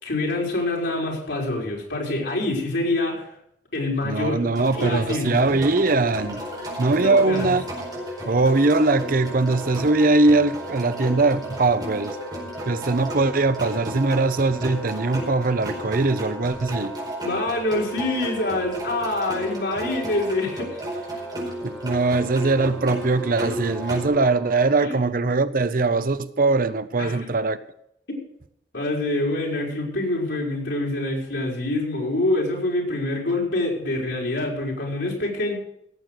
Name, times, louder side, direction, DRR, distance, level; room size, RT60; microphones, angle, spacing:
voice 1, 0.0-3.3 3.7-4.4 4.8-5.4 7.0-7.5 17.2-20.8 24.8-25.0 27.0-27.2 28.7-35.5, left 2 dB, 90° left, 4.6 m, -26 dB
voice 2, 4.0-6.4 6.8-7.7 8.3-12.2 12.7-17.0 21.6-27.6, right 3 dB, 50° right, 0.7 m, -21 dB
sound 1, 4.5-24.1, equal, 25° right, 4.8 m, -34 dB
Wind instrument woodwind instrument, 6.1-24.8, equal, 10° left, 2.9 m, -41 dB
17.0 x 7.7 x 6.5 m
head